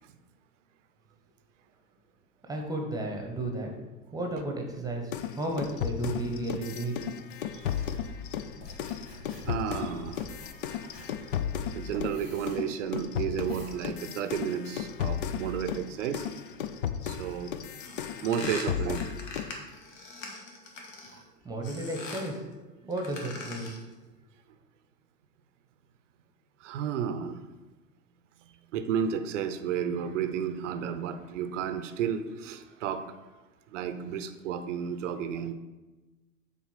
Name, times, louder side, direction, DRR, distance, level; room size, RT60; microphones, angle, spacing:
voice 1, 2.5-3.7 4.1-7.0 21.4-22.5 22.9-23.7, right 1 dB, 10° right, 2 dB, 1.0 m, -33 dB
sound 1, 5.1-12.2 12.5-19.6, left 8 dB, 40° left, 0.4 m, -34 dB
sound 2, 7.6-13.8, left 2 dB, 75° left, 2.3 m, -49 dB
voice 2, 9.5-10.4 11.7-16.3 17.0-17.5 18.2-19.0 26.6-27.5 28.7-33.2 33.7-35.5, right 8 dB, 50° right, 10 dB, 0.7 m, -32 dB
sound 3, 17.8-21.2 21.6-22.4 22.9-23.9, left 3 dB, 55° left, 1.6 m, -42 dB
7.4 x 4.2 x 5.7 m, 1.2 s
figure-of-eight pair, 95°, 47 cm